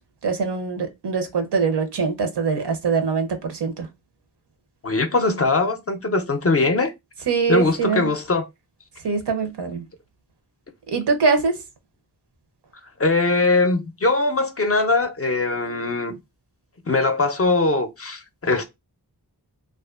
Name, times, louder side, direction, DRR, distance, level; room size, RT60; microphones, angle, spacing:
voice 1, 0.2-3.9 7.3-8.1 9.0-9.8 10.9-11.6, right 5 dB, 85° right, 0.6 m, -23 dB
voice 2, 4.8-6.9 7.5-8.4 13.0-16.2 16.9-18.6, left 3 dB, 35° left, 0.4 m, -21 dB
2.5 x 2.4 x 2.3 m
wide cardioid pair, 70°, 40 cm